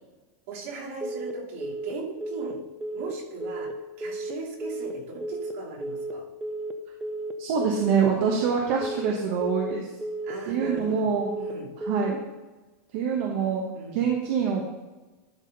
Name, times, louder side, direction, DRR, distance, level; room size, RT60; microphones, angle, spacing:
voice 1, 0.5-2.6 2.9-3.7 4.0-6.2 10.2-11.7 13.7-14.1, right 4 dB, 60° right, -2 dB, 3.0 m, -38 dB
Telephone, 1.0-1.3 1.6-1.9 2.2-2.5 2.8-3.1 3.4-3.7 4.0-4.3 4.6-4.9 5.2-5.5 5.8-6.1 6.4-6.7 7.0-7.3 7.6-7.9 8.2-8.5 8.8-9.1 9.4-9.7 10.0-10.3 10.6-10.9 11.2-11.5 11.8-12.1, right 2 dB, 5° right, 0.5 m, -33 dB
voice 2, 7.4-9.9 10.5-11.3 11.8-12.2 12.9-13.6 13.9-14.6, right 6 dB, 45° right, 0 dB, 1.2 m, -25 dB
12.0 x 4.3 x 5.3 m, 1.2 s
supercardioid pair, 175°, 8 cm